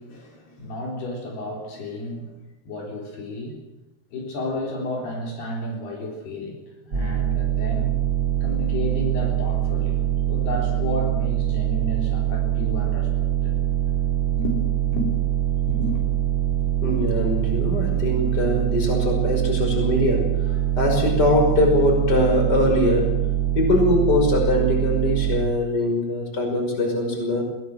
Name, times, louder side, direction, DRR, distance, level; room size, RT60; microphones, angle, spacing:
voice 1, 0.0-2.3 2.7-3.6 4.1-6.6 6.9-7.9 8.4-13.6 14.4-14.6 14.9-15.1 15.7-16.0, left 1 dB, 70° left, 0 dB, 5.7 m, -32 dB
sound 1, 6.9-25.4, right 12 dB, 85° right, 0.8 m, -23 dB
voice 2, 16.8-23.1 23.6-27.4, left 2 dB, 25° left, 2 dB, 5.8 m, -22 dB
22.0 x 18.5 x 7.8 m, 1.0 s
omnidirectional pair, 4.9 m